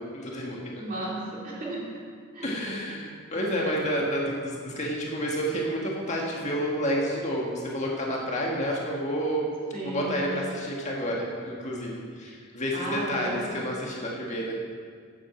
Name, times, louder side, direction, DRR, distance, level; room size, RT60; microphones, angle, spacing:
voice 1, 0.0-0.7 2.4-9.5 9.8-14.6, equal, 30° left, -2 dB, 1.6 m, -30 dB
voice 2, 0.8-1.8 2.3-2.5 9.7-10.2 12.7-13.6, right 1 dB, 40° right, -5 dB, 2.9 m, -34 dB
9.0 x 8.3 x 7.5 m, 2.1 s
head